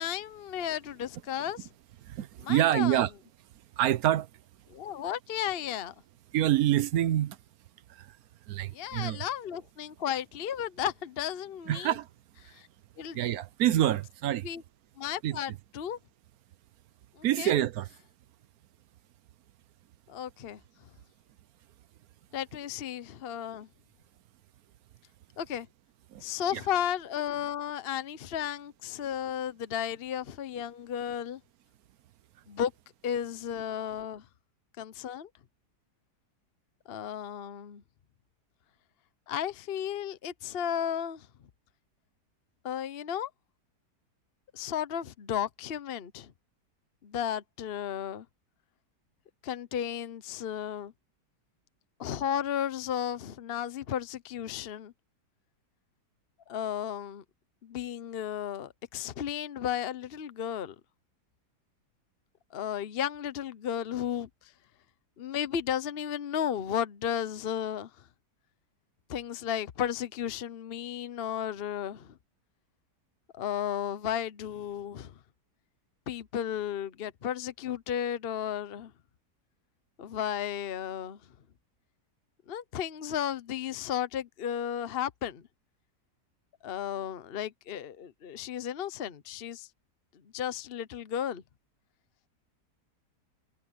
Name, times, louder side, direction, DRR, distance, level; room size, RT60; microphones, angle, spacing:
voice 1, 0.0-1.7 2.4-3.0 4.7-5.9 8.7-11.9 12.4-12.7 13.0-13.2 14.4-14.6 15.0-16.0 17.2-17.6 20.1-20.6 22.3-23.7 25.4-25.7 26.2-31.4 32.5-32.7 33.0-34.2 34.8-35.3 36.9-37.8 39.3-41.3 42.6-43.3 44.5-46.3 47.0-48.2 49.4-50.9 52.0-54.9 56.5-57.2 57.6-60.7 62.5-64.3 65.2-67.9 69.1-72.1 73.3-75.1 76.1-78.9 80.0-81.2 82.5-85.4 86.6-89.7 90.3-91.4, left 9 dB, 45° left, 0.9 m, -34 dB
voice 2, 2.0-3.1 3.8-4.3 6.3-7.4 7.9-8.2 8.5-9.2 11.7-12.1 13.1-14.5 15.2-15.6 17.2-17.9 26.1-26.2 26.5-26.6, right 12 dB, 65° right, 1.1 m, -27 dB
omnidirectional pair, 1.8 m